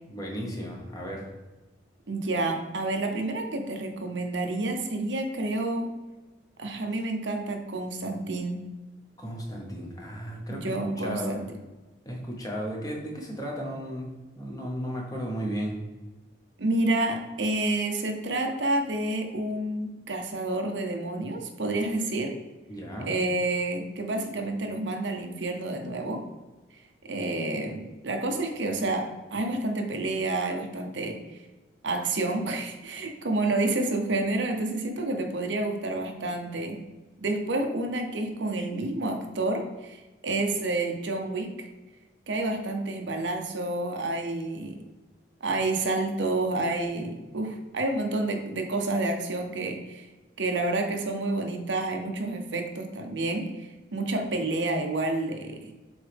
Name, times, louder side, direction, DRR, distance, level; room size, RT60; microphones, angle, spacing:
voice 1, 0.1-1.3 9.2-11.4 12.0-14.1 14.4-15.8 22.7-23.1, equal, 20° left, -1 dB, 1.1 m, -34 dB
voice 2, 2.1-5.9 6.6-8.6 10.5-11.4 16.6-22.4 23.0-26.2 27.0-31.4 31.8-36.8 37.2-41.7 42.3-44.8 45.4-50.1 50.4-55.7, right 2 dB, 85° right, 4 dB, 0.9 m, -29 dB
7.2 x 3.9 x 3.6 m, 1.2 s
head